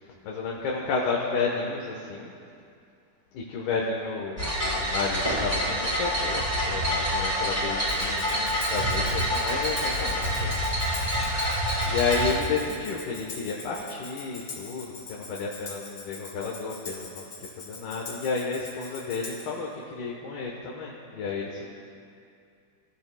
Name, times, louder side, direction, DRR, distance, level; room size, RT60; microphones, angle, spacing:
voice 1, 0.2-2.3 3.3-10.6 11.0-11.1 11.8-21.7, left 4 dB, 70° left, -3 dB, 2.9 m, -31 dB
sound 1, 4.4-12.3, equal, 15° right, 3.4 m, -27 dB
Tambourine, 7.9-19.6, left 4 dB, 40° left, 1.9 m, -42 dB
25.0 x 14.5 x 2.3 m, 2.4 s
omnidirectional pair, 5.1 m